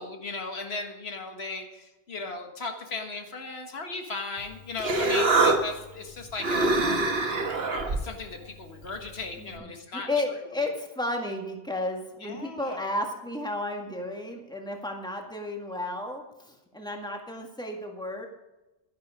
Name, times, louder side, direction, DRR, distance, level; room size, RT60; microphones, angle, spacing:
voice 1, 0.0-7.2 7.8-10.1 12.2-12.8, left 3 dB, 85° left, 4 dB, 1.8 m, -37 dB
Human voice, 4.4-9.6, right 2 dB, 80° right, 1.5 m, -27 dB
voice 2, 9.4-18.3, left 1 dB, 5° left, 2 dB, 1.8 m, -33 dB
11.5 x 11.0 x 4.9 m, 0.99 s
omnidirectional pair, 1.0 m